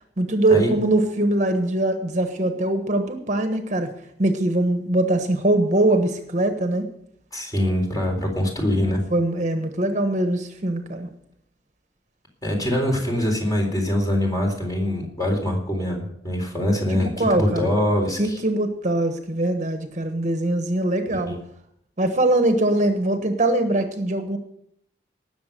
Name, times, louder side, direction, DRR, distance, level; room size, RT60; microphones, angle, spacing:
voice 1, 0.2-3.9 4.2-6.9 9.1-11.1 16.9-17.7 18.2-21.3 22.0-24.4, right 1 dB, 40° right, 6 dB, 1.3 m, -22 dB
voice 2, 7.3-9.0 12.4-18.4 21.3-21.4, left 1 dB, 20° left, 1 dB, 4.0 m, -23 dB
18.5 x 7.2 x 6.8 m, 0.71 s
head